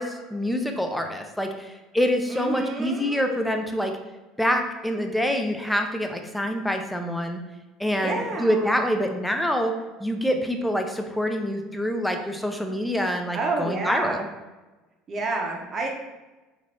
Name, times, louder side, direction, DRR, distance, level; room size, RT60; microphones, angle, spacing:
voice 1, 0.0-3.9 4.4-7.4 7.8-9.7 10.0-14.3, equal, 5° left, 5 dB, 0.4 m, -26 dB
voice 2, 2.3-3.4 7.9-8.7 13.3-14.2 15.1-15.9, right 3 dB, 40° right, 1 dB, 0.7 m, -29 dB
3.2 x 2.5 x 2.5 m, 1.2 s
supercardioid pair, 90°, 0 cm